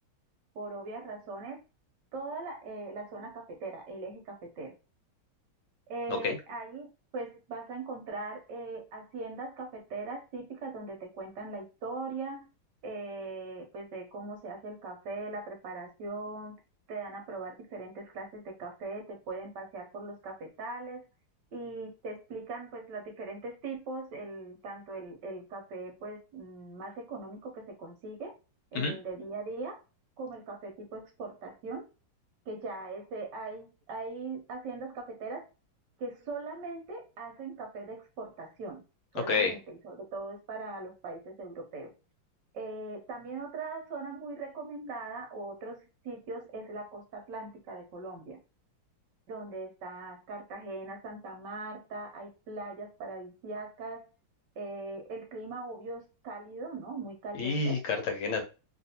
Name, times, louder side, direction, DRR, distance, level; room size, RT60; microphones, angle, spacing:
voice 1, 0.5-1.6 2.1-4.7 5.9-6.9 7.1-12.5 12.8-16.6 16.9-21.0 21.5-28.3 28.7-29.8 30.2-31.9 32.5-35.5 36.0-38.8 39.1-41.9 42.5-48.4 49.3-54.1 54.6-57.8, right 3 dB, 65° right, 3 dB, 1.2 m, -40 dB
voice 2, 57.4-58.4, left 4 dB, 75° left, 4 dB, 1.6 m, -29 dB
3.3 x 2.5 x 2.8 m, 0.31 s
omnidirectional pair, 2.3 m